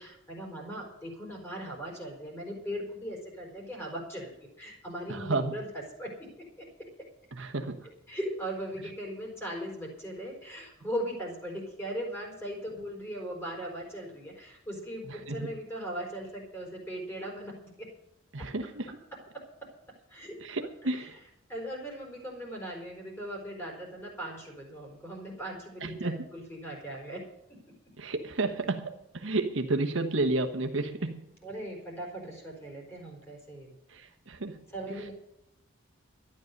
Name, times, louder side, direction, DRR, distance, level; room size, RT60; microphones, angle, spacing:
voice 1, 0.0-4.3 4.6-5.7 6.0-6.3 6.6-6.9 8.1-17.9 19.3-19.4 20.1-20.4 21.5-27.2 27.5-27.6 31.4-33.8 34.7-35.1, equal, 10° left, 0 dB, 4.7 m, -39 dB
voice 2, 5.1-5.6 7.3-7.9 8.8-8.9 15.0-15.5 18.3-19.0 20.4-21.2 25.8-26.3 28.0-31.3 33.9-35.1, right 2 dB, 65° right, 6 dB, 1.2 m, -32 dB
12.5 x 11.0 x 6.6 m, 0.83 s
head